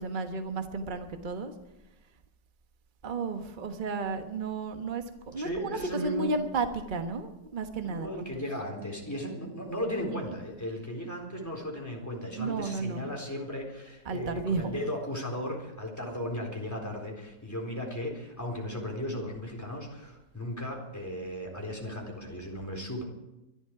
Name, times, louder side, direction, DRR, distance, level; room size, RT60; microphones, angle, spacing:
voice 1, 0.0-1.5 3.0-8.5 10.1-10.3 12.4-13.1 14.0-14.8, right 3 dB, 30° right, 6 dB, 1.2 m, -33 dB
voice 2, 5.4-6.3 7.8-23.0, equal, 10° left, 1 dB, 3.9 m, -36 dB
24.0 x 12.0 x 4.8 m, 0.93 s
omnidirectional pair, 1.9 m